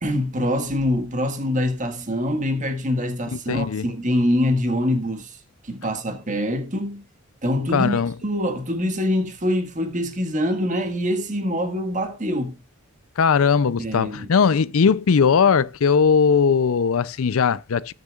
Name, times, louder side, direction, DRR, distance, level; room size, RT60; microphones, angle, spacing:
voice 1, 0.0-5.4 5.6-7.0 7.4-12.6 13.8-14.3, left 1 dB, 35° right, 1.6 m, -24 dB
voice 2, 3.3-3.9 7.7-8.1 13.2-17.9, left 6 dB, 70° left, 0.5 m, -19 dB
18.5 x 6.7 x 2.4 m
head